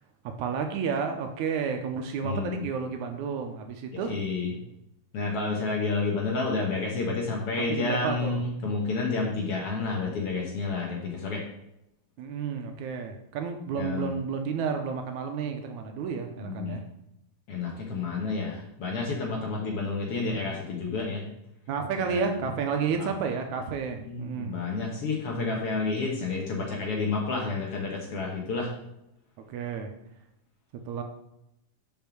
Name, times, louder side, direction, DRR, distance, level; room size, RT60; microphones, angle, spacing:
voice 1, 0.2-4.2 7.7-8.4 12.2-16.8 21.7-24.6 29.5-29.9 30.9-31.0, right 6 dB, 75° right, 5 dB, 2.0 m, -31 dB
voice 2, 2.2-2.6 4.1-4.6 5.1-11.4 13.7-14.1 16.4-16.8 17.5-21.2 22.0-22.3 23.0-23.1 24.0-28.7, left 3 dB, 60° left, -1 dB, 1.8 m, -30 dB
5.4 x 5.4 x 6.0 m, 0.84 s
omnidirectional pair, 3.6 m